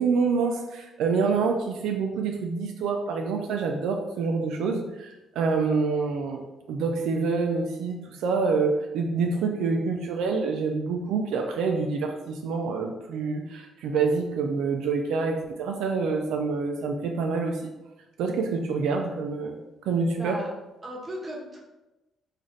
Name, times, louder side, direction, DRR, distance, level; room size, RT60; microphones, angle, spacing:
voice 1, 0.0-6.4 6.7-17.6 18.2-19.6 19.8-20.4, right 4 dB, 85° right, 3 dB, 0.3 m, -27 dB
voice 2, 20.2-20.5 20.8-21.6, right 1 dB, 25° right, -3 dB, 1.0 m, -36 dB
3.1 x 2.5 x 3.9 m, 1.0 s
cardioid pair, 90°, 0 cm